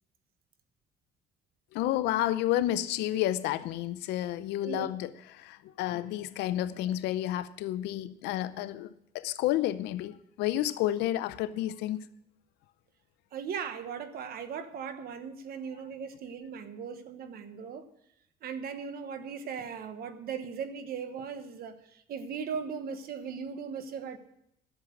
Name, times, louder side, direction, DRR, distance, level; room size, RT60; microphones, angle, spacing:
voice 1, 1.7-12.0, left 13 dB, 90° left, 0.6 m, -31 dB
voice 2, 13.3-17.9 18.4-24.2, right 6 dB, 65° right, 1.2 m, -38 dB
11.5 x 7.3 x 7.5 m
cardioid pair, 110°, 17 cm